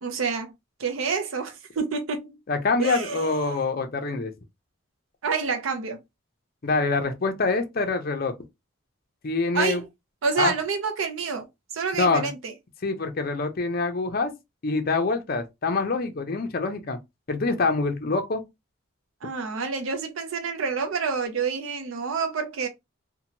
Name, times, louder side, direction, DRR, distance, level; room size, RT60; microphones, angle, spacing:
voice 1, 0.0-0.5 0.8-2.4 2.8-3.6 5.2-6.0 9.5-9.9 10.2-11.5 11.7-12.5 19.2-22.7, right 5 dB, 85° right, 0.5 m, -28 dB
voice 2, 2.5-4.3 6.6-8.3 9.2-9.8 10.4-10.5 12.0-12.3 12.8-14.3 14.6-17.0 17.3-18.4, left 3 dB, 45° left, 0.5 m, -25 dB
2.8 x 2.1 x 2.8 m
head